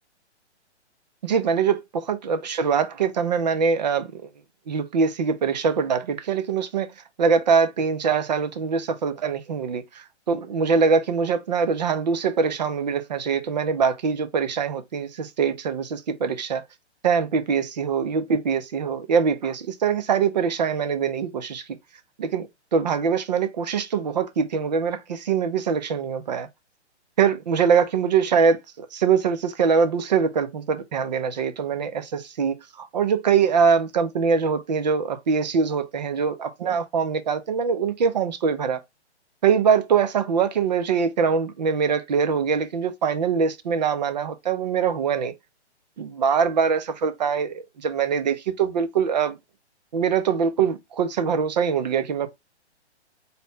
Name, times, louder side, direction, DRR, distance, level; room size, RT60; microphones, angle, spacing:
voice 1, 1.2-4.2 4.7-6.9 7.2-16.6 17.0-21.7 22.2-26.5 27.2-38.8 39.4-45.3 46.0-49.4 49.9-52.3, right 6 dB, 40° right, 0.5 m, -23 dB
4.1 x 2.1 x 3.3 m
hypercardioid pair, 165°, 35 cm